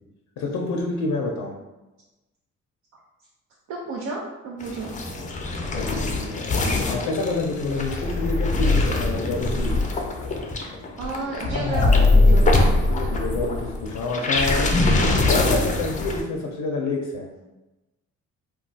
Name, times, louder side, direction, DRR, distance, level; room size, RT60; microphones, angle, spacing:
voice 1, 0.4-1.5 5.6-6.5 6.9-9.7 12.9-14.7 15.3-17.3, left 3 dB, 75° left, 0 dB, 0.5 m, -28 dB
voice 2, 3.7-4.9 11.0-12.5, right 3 dB, 65° right, -2 dB, 0.5 m, -31 dB
sound 1, 4.6-16.2, left 2 dB, 25° left, 0.4 m, -22 dB
2.3 x 2.3 x 3.9 m, 1.0 s
cardioid pair, 90°, 30 cm